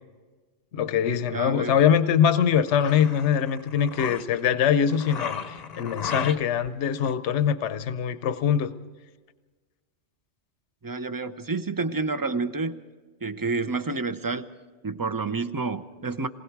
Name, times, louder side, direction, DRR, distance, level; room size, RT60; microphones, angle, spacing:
voice 1, 0.7-8.7, left 8 dB, 75° left, 11 dB, 1.1 m, -23 dB
voice 2, 1.3-1.8 10.8-12.8 13.2-14.4 14.8-16.3, right 3 dB, 20° right, 11 dB, 0.6 m, -29 dB
sound 1, 2.3-4.4 4.9-6.7 7.0-7.1, left 6 dB, 40° left, 0.8 m, -35 dB
27.5 x 20.5 x 4.7 m, 1.3 s
omnidirectional pair, 1.2 m